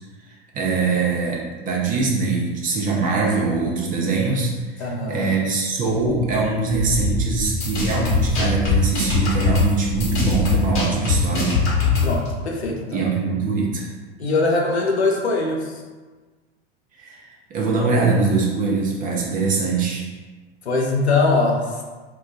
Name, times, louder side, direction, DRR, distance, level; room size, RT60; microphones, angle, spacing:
voice 1, 0.3-11.6 12.9-13.9 17.0-20.1, right 4 dB, 25° right, -2 dB, 0.6 m, -23 dB
voice 2, 4.8-5.3 12.0-13.0 14.2-15.7 20.6-21.8, left 3 dB, 80° left, 0 dB, 0.6 m, -21 dB
sound 1, 6.0-10.5, left 2 dB, 20° left, 0.4 m, -28 dB
sound 2, 7.5-12.3, left 4 dB, 40° left, 0.9 m, -21 dB
2.3 x 2.2 x 3.7 m, 1.3 s
figure-of-eight pair, 80°, 32 cm